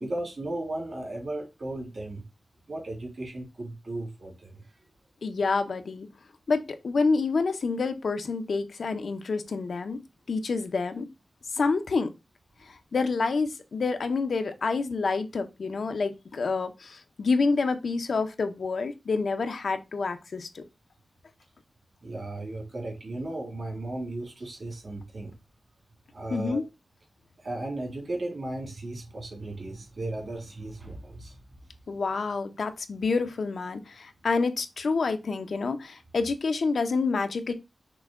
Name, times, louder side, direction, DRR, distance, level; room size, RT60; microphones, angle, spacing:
voice 1, 0.0-2.2 2.7-4.6 22.0-25.4 26.1-26.6 27.4-31.4, right 2 dB, 60° right, 1.9 m, -35 dB
voice 2, 5.2-6.1 6.5-10.0 10.3-11.1 11.5-12.1 12.7-20.6 26.3-26.6 31.9-37.5, left 4 dB, 75° left, 0.5 m, -28 dB
6.0 x 2.1 x 3.5 m
wide cardioid pair, 105°, 0 cm